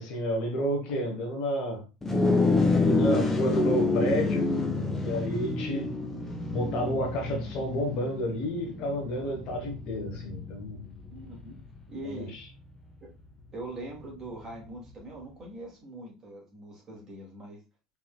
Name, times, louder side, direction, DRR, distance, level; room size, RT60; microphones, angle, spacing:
voice 1, 0.0-1.8 2.6-4.5 5.0-6.0 6.5-10.8 12.0-12.5, equal, 50° left, 1.4 m, -30 dB
sound 1, 2.0-11.6, left 3 dB, 15° left, 0.9 m, -28 dB
voice 2, 11.1-11.6 11.9-12.3 13.5-17.6, right 2 dB, 30° right, 2.4 m, -42 dB
4.7 x 3.9 x 2.3 m
figure-of-eight pair, 70°, 2 cm